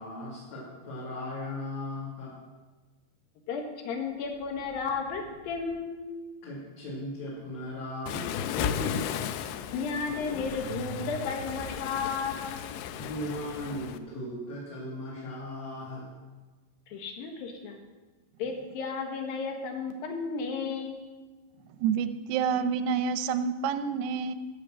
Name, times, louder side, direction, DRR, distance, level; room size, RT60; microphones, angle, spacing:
voice 1, 0.0-2.3 6.4-9.3 12.9-16.2, left 1 dB, 45° left, -7 dB, 3.4 m, -37 dB
voice 2, 3.5-6.1 9.7-12.6 16.9-17.8 18.4-21.0, left 5 dB, 70° left, 3 dB, 3.1 m, -33 dB
sound 1, 4.2-6.0 9.0-9.1 10.0-11.9, right 4 dB, 30° left, 2.8 m, -46 dB
Waves surf, 8.1-14.0, left 9 dB, 85° left, 2.5 m, -35 dB
voice 3, 21.8-24.3, right 6 dB, 90° right, 11 dB, 2.8 m, -28 dB
15.0 x 6.8 x 7.5 m, 1.3 s
omnidirectional pair, 4.6 m